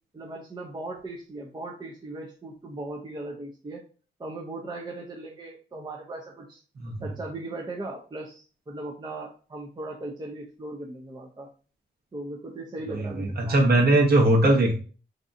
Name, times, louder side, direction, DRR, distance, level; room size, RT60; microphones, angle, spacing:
voice 1, 0.1-3.8 4.2-6.6 7.0-11.5 12.1-13.6, right 2 dB, 20° right, 0 dB, 0.5 m, -38 dB
voice 2, 12.9-14.7, right 1 dB, 50° right, -1 dB, 1.0 m, -20 dB
2.6 x 2.3 x 2.6 m, 0.38 s
cardioid pair, 60°, 20 cm